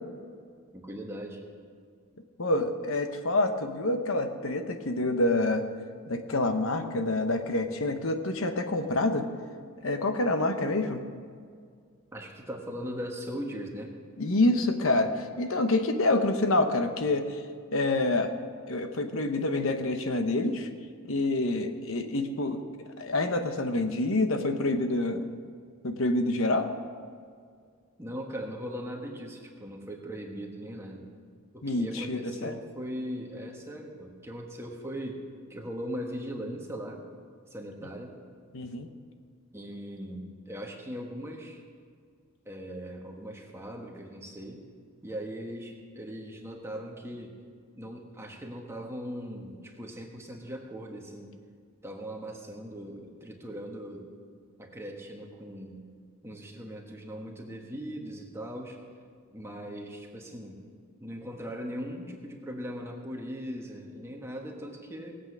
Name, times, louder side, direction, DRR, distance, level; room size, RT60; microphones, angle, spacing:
voice 1, 0.7-1.4 12.1-13.9 28.0-31.1 31.5-35.2 35.5-37.0 37.5-38.1 39.5-41.6 42.4-44.6 45.0-47.4 47.7-51.3 51.8-54.1 54.6-55.8 56.2-58.8 59.3-60.6 61.0-65.2, equal, 10° right, 1 dB, 1.5 m, -39 dB
voice 2, 2.4-5.6 6.1-9.3 9.8-11.0 14.2-17.4 17.7-18.3 18.7-20.7 21.1-22.6 23.0-25.3 25.8-26.7 31.6-32.5 38.5-38.9, left 2 dB, 65° left, 7 dB, 0.9 m, -27 dB
19.5 x 8.2 x 6.1 m, 2.1 s
head